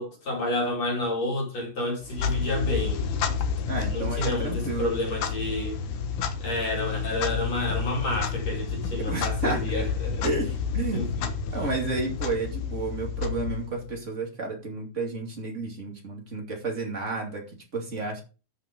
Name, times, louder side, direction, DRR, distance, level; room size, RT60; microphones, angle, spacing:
voice 1, 0.0-3.0 3.9-5.8 6.4-10.2 10.9-11.3, left 1 dB, 40° left, 3.8 m, -30 dB
Clock, 2.0-14.0, left 6 dB, 65° left, 2.1 m, -30 dB
voice 2, 3.7-4.9 9.1-9.6 10.2-11.1 11.5-18.2, right 3 dB, 25° right, 1.9 m, -31 dB
13.5 x 5.5 x 5.3 m
omnidirectional pair, 4.9 m